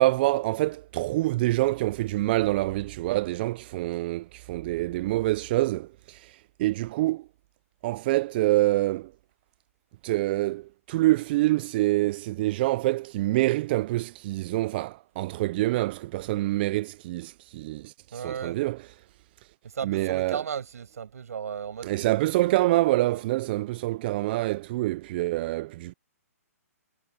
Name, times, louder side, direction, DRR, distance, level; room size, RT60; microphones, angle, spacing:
voice 1, 0.0-7.3 7.8-9.1 10.0-18.8 19.8-20.4 21.8-25.9, right 18 dB, 40° right, 0.5 m, -26 dB
voice 2, 18.1-18.6 19.6-22.2 23.0-23.2, right 7 dB, 70° right, 6.3 m, -35 dB
hypercardioid pair, 135°, 9 cm